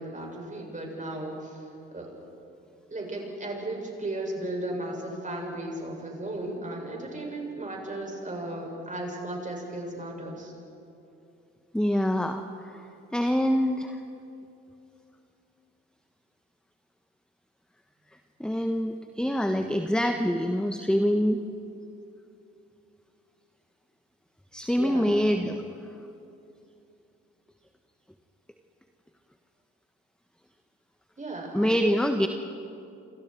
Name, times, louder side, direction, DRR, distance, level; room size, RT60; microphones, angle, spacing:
voice 1, 0.0-1.6 1.9-2.1 2.9-10.5 24.8-25.1 31.2-31.8, right 1 dB, 25° right, 0 dB, 7.7 m, -35 dB
voice 2, 11.7-14.0 18.4-21.4 24.5-25.6 31.5-32.3, equal, ahead, 6 dB, 1.4 m, -25 dB
29.0 x 27.0 x 4.9 m, 2.7 s
hypercardioid pair, 50°, 33 cm